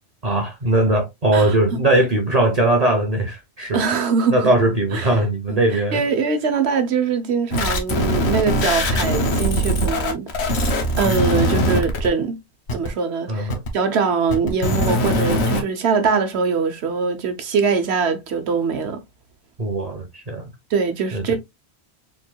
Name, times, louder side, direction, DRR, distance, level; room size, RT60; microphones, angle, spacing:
voice 1, 0.2-3.8 4.3-6.0 11.7-11.8 13.3-13.6 19.6-20.4 21.1-21.4, right 1 dB, 40° right, 0.9 m, -20 dB
voice 2, 3.7-4.5 4.9-5.1 5.5-10.3 11.0-12.4 12.7-19.0 20.7-21.4, right 5 dB, 80° right, 1.1 m, -22 dB
sound 1, 7.5-12.1 12.7-12.9 13.5-13.7 14.3-15.6, left 1 dB, 80° left, 1.3 m, -21 dB
4.4 x 3.8 x 2.2 m
omnidirectional pair, 1.1 m